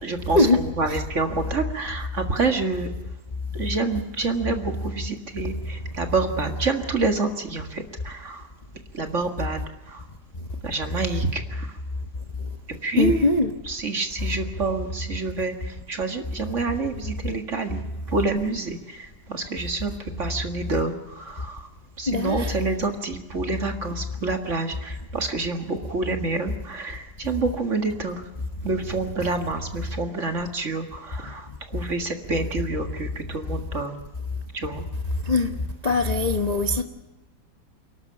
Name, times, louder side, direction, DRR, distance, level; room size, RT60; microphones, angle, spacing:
voice 1, 0.0-0.4 0.8-2.9 3.6-8.4 8.9-9.6 10.6-11.4 12.7-13.2 13.7-15.5 15.9-17.8 18.1-18.8 19.3-20.9 21.3-21.6 22.0-28.2 28.6-31.4 31.7-33.9 34.5-34.8, right 3 dB, 40° right, 2.1 m, -27 dB
voice 2, 13.0-13.5 22.1-22.5 35.3-35.5 35.8-36.8, left 2 dB, 25° left, 0.9 m, -21 dB
28.5 x 12.0 x 8.6 m
omnidirectional pair, 2.1 m